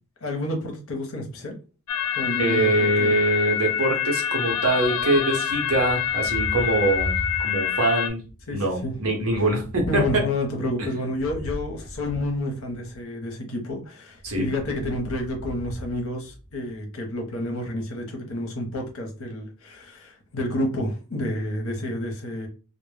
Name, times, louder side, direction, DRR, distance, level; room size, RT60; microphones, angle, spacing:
voice 1, 0.2-1.6 2.2-3.1 8.5-8.9 9.9-22.5, left 1 dB, 65° left, 2 dB, 0.7 m, -30 dB
sound 1, 1.9-8.1, left 10 dB, 80° left, 0.3 m, -26 dB
voice 2, 2.4-7.1 7.4-8.2 8.5-10.0 14.2-14.5, right 2 dB, 75° right, 2 dB, 0.8 m, -23 dB
Thunder, 5.5-7.9 8.2-13.0 14.1-16.7, equal, 25° left, 0.9 m, -37 dB
2.1 x 2.0 x 3.2 m, 0.34 s
head